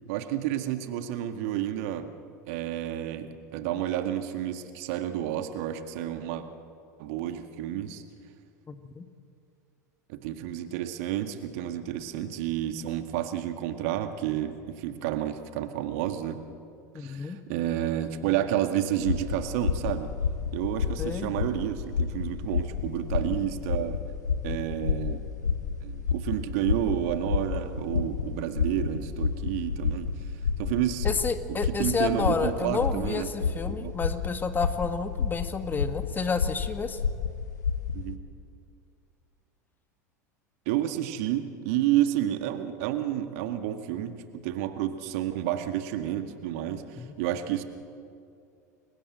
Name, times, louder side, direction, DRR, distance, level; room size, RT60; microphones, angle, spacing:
voice 1, 0.1-2.1 2.5-6.5 7.0-8.0 10.1-16.4 16.9-20.1 20.5-24.0 24.4-25.2 25.8-30.1 30.6-31.1 31.8-33.3 33.7-33.9 37.9-38.2 40.7-47.6, right 12 dB, 55° right, 8 dB, 1.9 m, -30 dB
voice 2, 8.7-9.1 16.9-17.4 21.0-21.3 31.0-37.0 47.0-47.1, left 5 dB, 20° left, 9 dB, 1.8 m, -30 dB
sound 1, 19.0-38.2, left 6 dB, 75° left, 1.6 m, -31 dB
29.5 x 23.5 x 7.7 m, 2.4 s
figure-of-eight pair, 80°, 10 cm